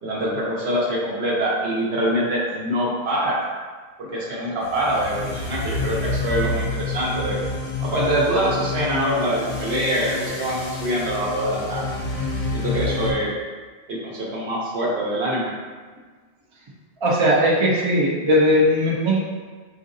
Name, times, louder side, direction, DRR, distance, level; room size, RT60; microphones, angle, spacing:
voice 1, 0.0-3.4 4.0-7.4 7.8-11.9 12.5-13.3 13.9-15.5, right 1 dB, 70° right, -5 dB, 1.0 m, -24 dB
sound 1, 4.6-13.1, left 3 dB, 80° left, 0.8 m, -28 dB
voice 2, 17.0-19.2, equal, 45° right, -5 dB, 0.4 m, -18 dB
3.7 x 2.5 x 2.6 m, 1.5 s
omnidirectional pair, 1.1 m